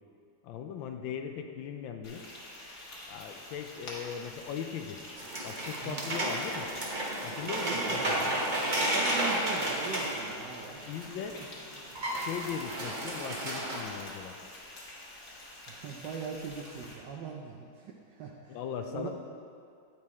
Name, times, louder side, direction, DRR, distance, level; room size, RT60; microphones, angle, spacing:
voice 1, 0.4-2.2 3.1-5.0 5.4-6.7 7.2-8.3 10.9-11.4 12.2-14.4 18.5-19.1, left 8 dB, 75° left, 6 dB, 1.2 m, -39 dB
Frying (food), 2.0-16.9, left 1 dB, 50° left, 1.8 m, -47 dB
sound 1, 5.2-11.1 11.4-11.5 11.7-13.8, right 1 dB, 40° right, 0.6 m, -32 dB
voice 2, 5.8-6.1 7.4-10.8 15.7-18.6 18.9-19.1, right 6 dB, 70° right, -1 dB, 1.1 m, -41 dB
9.3 x 6.1 x 4.2 m, 2.3 s
omnidirectional pair, 2.4 m